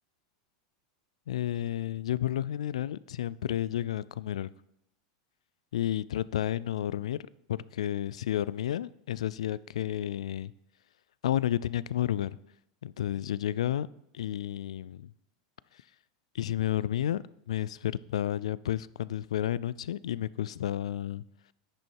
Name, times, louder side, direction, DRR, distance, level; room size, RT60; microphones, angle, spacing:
voice 1, 1.3-4.5 5.7-7.2 7.5-10.5 11.2-12.4 12.8-13.9 14.1-15.1 16.3-21.2, left 11 dB, 85° left, 20 dB, 0.3 m, -31 dB
10.5 x 6.4 x 4.6 m, 0.77 s
hypercardioid pair, 120°, 3 cm